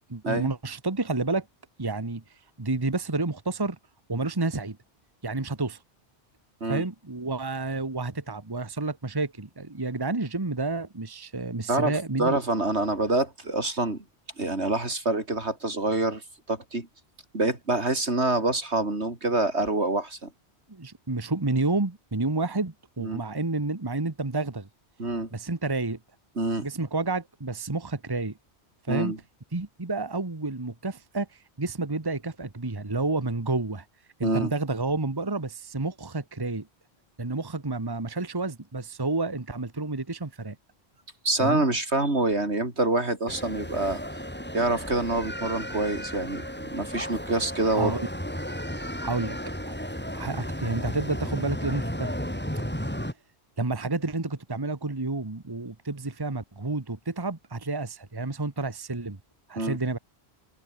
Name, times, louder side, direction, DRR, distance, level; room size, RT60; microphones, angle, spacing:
voice 1, 0.1-1.5 1.8-2.2 2.6-3.8 4.1-4.8 5.2-5.8 6.7-12.4 20.7-24.7 25.3-26.0 26.6-28.3 28.9-29.1 29.5-33.8 34.2-36.7 37.2-40.6 41.4-41.6 47.8-48.1 49.0-49.4 49.7-49.8 50.1-52.1 52.9-53.0 53.6-59.2 59.5-60.0, right 3 dB, 20° right, 1.4 m, -30 dB
voice 2, 12.2-14.0 14.4-16.2 16.5-16.9 17.3-20.3 23.0-23.2 25.0-25.3 26.4-26.6 28.9-29.2 34.2-34.5 41.2-44.0 44.5-48.0 59.6-59.8, right 2 dB, 80° right, 4.7 m, -26 dB
sound 1, 43.3-53.1, equal, 10° left, 6.0 m, -34 dB
open air
omnidirectional pair, 1.1 m